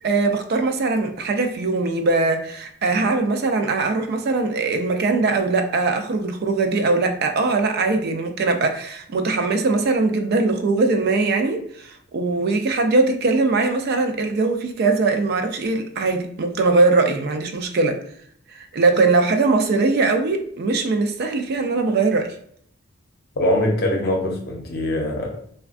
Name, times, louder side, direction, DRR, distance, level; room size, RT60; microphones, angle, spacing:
voice 1, 0.0-18.0 18.5-22.3, right 3 dB, 50° right, 6 dB, 0.4 m, -21 dB
voice 2, 23.4-25.5, left 1 dB, 50° left, 1 dB, 0.6 m, -23 dB
3.3 x 2.2 x 2.4 m, 0.64 s
head